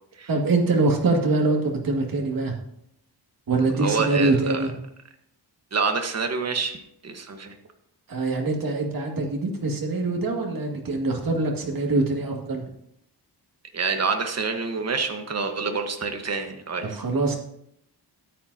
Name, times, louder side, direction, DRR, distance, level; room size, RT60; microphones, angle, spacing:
voice 1, 0.3-2.6 3.5-4.7 8.1-12.6 16.8-17.4, right 3 dB, 55° right, 0 dB, 2.2 m, -24 dB
voice 2, 3.8-4.6 5.7-7.5 13.7-17.0, right 4 dB, 40° right, 5 dB, 1.3 m, -27 dB
13.0 x 10.0 x 2.8 m, 0.75 s
wide cardioid pair, 130°, 41 cm